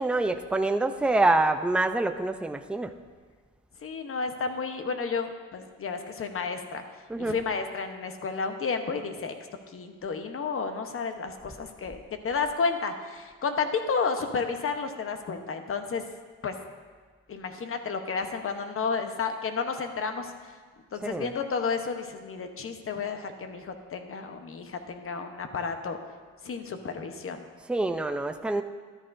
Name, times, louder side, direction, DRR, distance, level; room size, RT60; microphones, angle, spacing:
voice 1, 0.0-2.9 7.1-7.4 21.0-21.3 27.6-28.6, right 2 dB, 5° right, 7 dB, 0.5 m, -26 dB
voice 2, 3.8-6.8 7.2-9.3 9.7-16.0 16.4-16.5 17.3-20.3 20.9-26.0 26.4-27.4, left 5 dB, 45° left, 6 dB, 1.0 m, -31 dB
13.5 x 11.0 x 2.6 m, 1.5 s
cardioid pair, 90°, 30 cm